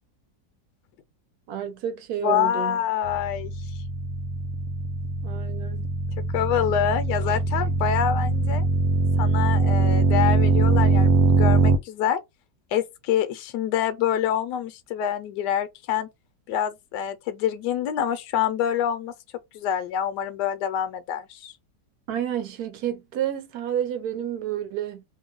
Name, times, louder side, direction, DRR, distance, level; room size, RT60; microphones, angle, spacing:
voice 1, 1.5-2.8 5.2-5.9 22.1-25.0, right 10 dB, 65° right, 1.1 m, -30 dB
voice 2, 2.2-3.5 6.3-8.6 9.2-12.2 12.7-16.1 16.5-19.1 19.5-21.5, left 9 dB, 75° left, 1.1 m, -26 dB
sound 1, 3.0-11.8, right 3 dB, 85° right, 1.3 m, -22 dB
3.0 x 2.2 x 3.6 m
omnidirectional pair, 2.0 m